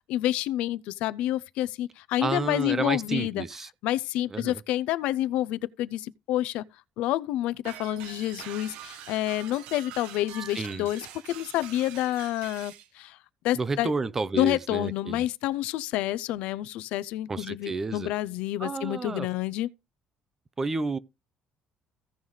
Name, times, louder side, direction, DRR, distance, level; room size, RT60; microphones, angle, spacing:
voice 1, 0.1-3.5 3.8-6.6 7.0-13.2 13.4-13.9 14.3-19.7, left 14 dB, 80° left, 0.5 m, -28 dB
voice 2, 2.2-3.7 4.3-4.6 10.5-10.9 13.5-15.2 17.3-18.1 18.6-19.3 20.6-21.0, right 3 dB, 20° right, 0.6 m, -31 dB
sound 1, 7.7-12.9, right 10 dB, 90° right, 1.3 m, -44 dB
16.0 x 5.5 x 3.2 m
cardioid pair, 165°, 2 cm